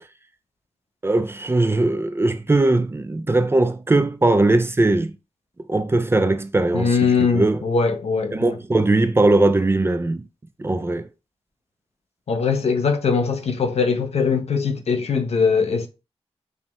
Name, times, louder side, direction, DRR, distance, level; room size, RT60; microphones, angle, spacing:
voice 1, 1.0-5.1 5.7-7.0 7.3-7.6 8.3-10.2 10.6-11.1, right 2 dB, 20° right, 0.4 m, -19 dB
voice 2, 6.7-8.6 12.3-15.9, left 5 dB, 70° left, 0.6 m, -21 dB
5.5 x 2.1 x 3.0 m
wide cardioid pair, 75°, 11 cm